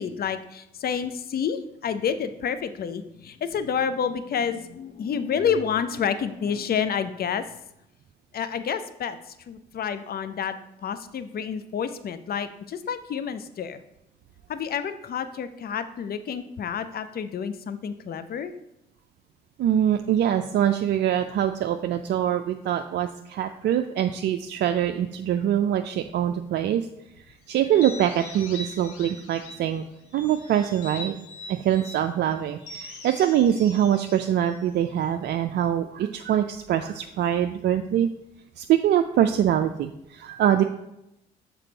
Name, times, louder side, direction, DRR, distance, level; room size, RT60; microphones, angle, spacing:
voice 1, 0.0-7.4 8.3-9.2 9.5-10.6 10.8-13.8 14.5-18.5, left 7 dB, 45° left, 12 dB, 0.6 m, -29 dB
voice 2, 19.6-26.9 27.3-29.8 30.1-31.2 31.5-38.1 38.6-40.6, right 10 dB, 55° right, 6 dB, 0.4 m, -24 dB
sound 1, 27.6-29.7 30.1-32.0 32.6-35.1, left 1 dB, 75° left, 1.2 m, -41 dB
6.7 x 4.5 x 3.9 m, 0.84 s
hypercardioid pair, 50°, 21 cm